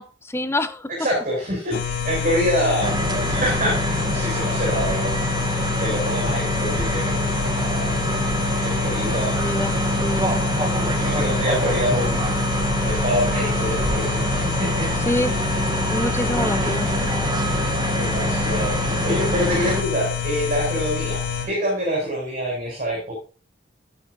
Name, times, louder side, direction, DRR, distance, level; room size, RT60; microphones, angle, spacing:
voice 1, 0.0-0.9 2.6-2.8 9.4-11.0 15.1-15.4 15.9-17.1, left 1 dB, 15° left, 12 dB, 0.9 m, -27 dB
voice 2, 1.0-5.2 5.8-7.9 8.6-9.3 10.7-12.5 12.8-14.9 16.5-17.0 17.9-23.1, equal, 45° right, -4 dB, 7.1 m, -26 dB
sound 1, 1.7-21.5, left 7 dB, 55° left, 3.7 m, -27 dB
sound 2, 2.8-19.8, right 2 dB, 25° right, 1.2 m, -25 dB
15.0 x 8.9 x 2.8 m, 0.36 s
head